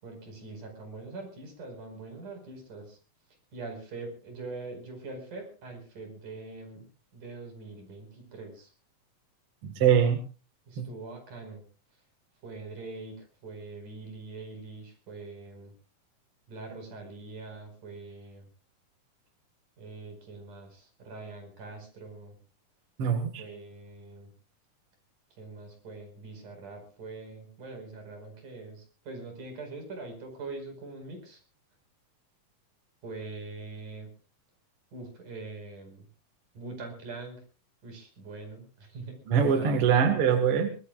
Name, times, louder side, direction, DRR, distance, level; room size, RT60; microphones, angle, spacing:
voice 1, 0.0-3.0 3.5-6.9 7.1-8.7 10.7-11.6 12.4-15.7 16.5-18.5 19.8-22.4 23.4-24.3 25.4-31.4 33.0-34.1 34.9-36.1 36.5-37.4 37.8-39.2 39.5-40.0, right 3 dB, 65° right, 5 dB, 6.6 m, -43 dB
voice 2, 9.6-10.2 10.8-10.9 23.0-23.4 39.3-40.7, right 7 dB, 50° right, 6 dB, 2.3 m, -23 dB
24.5 x 19.0 x 2.4 m, 0.35 s
omnidirectional pair, 3.8 m